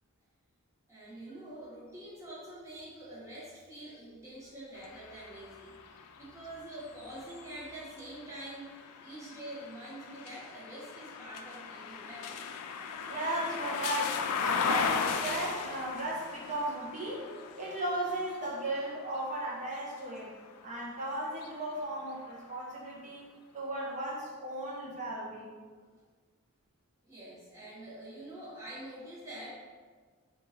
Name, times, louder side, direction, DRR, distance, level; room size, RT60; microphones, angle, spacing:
voice 1, 0.9-12.3 27.0-29.5, right 1 dB, 15° right, -8 dB, 1.2 m, -46 dB
sound 1, 4.8-20.7 21.3-22.5, left 6 dB, 80° left, 0.3 m, -38 dB
voice 2, 13.1-17.3 17.6-20.3 20.6-23.2 23.5-25.6, right 1 dB, 35° right, -4 dB, 0.8 m, -36 dB
4.6 x 2.6 x 2.8 m, 1.5 s
head